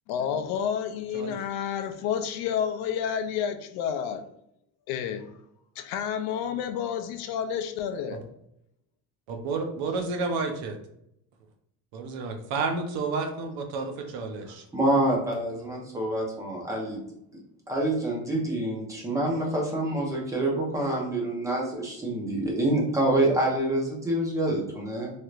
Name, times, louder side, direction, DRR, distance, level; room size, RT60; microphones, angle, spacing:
voice 1, 0.1-4.2 4.9-5.4 5.8-8.2, left 8 dB, 65° left, 0.5 m, -30 dB
voice 2, 9.3-10.8 11.9-14.6, right 4 dB, 65° right, 0.7 m, -30 dB
voice 3, 14.7-17.0 17.7-25.1, right 1 dB, 10° right, 0.8 m, -26 dB
3.2 x 2.8 x 2.4 m
cardioid pair, 155°, 40 cm